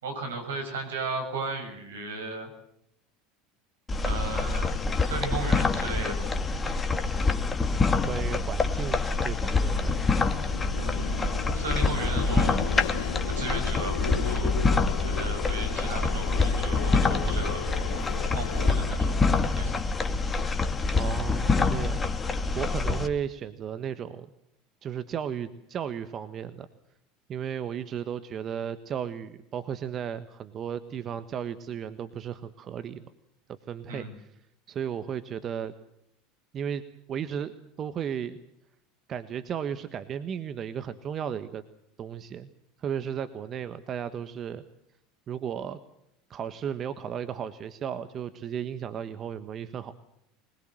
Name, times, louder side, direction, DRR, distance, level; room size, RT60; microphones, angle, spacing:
voice 1, 0.0-2.5 4.0-6.2 10.7-12.7 13.3-14.5 15.0-17.6 18.3-19.7 33.9-34.1, right 2 dB, 80° right, 6 dB, 7.1 m, -35 dB
sound 1, 3.9-23.1, left 3 dB, 20° left, 2.1 m, -26 dB
voice 2, 8.0-10.0 20.9-22.1 22.5-24.3 24.8-26.7 27.3-33.1 33.7-34.4 34.7-35.7 36.5-36.8 37.1-38.4 39.1-41.6 42.0-42.5 42.8-44.6 45.3-45.8 46.3-49.9, right 8 dB, 40° right, 11 dB, 1.4 m, -34 dB
sound 2, 9.1-18.7, left 9 dB, 80° left, 1.4 m, -37 dB
22.5 x 21.5 x 7.7 m, 0.77 s
hypercardioid pair, 80°, 0 cm